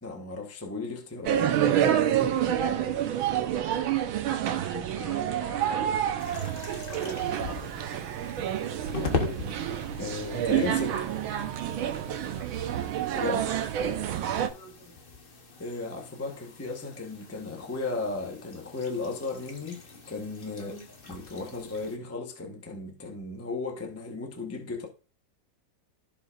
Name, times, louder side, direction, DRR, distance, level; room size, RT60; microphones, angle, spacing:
voice 1, 0.0-1.6 10.0-11.1 13.1-13.5 15.6-20.7 21.1-24.9, left 3 dB, 10° left, 0.7 m, -35 dB
sound 1, 1.2-14.5, right 10 dB, 90° right, 1.6 m, -28 dB
voice 2, 4.7-6.0 6.9-7.7 12.4-12.5 14.5-15.0 20.5-20.8, right 1 dB, 60° left, 4.1 m, -44 dB
sound 2, 6.2-22.0, left 4 dB, 40° left, 0.9 m, -40 dB
15.0 x 5.0 x 2.5 m
omnidirectional pair, 2.2 m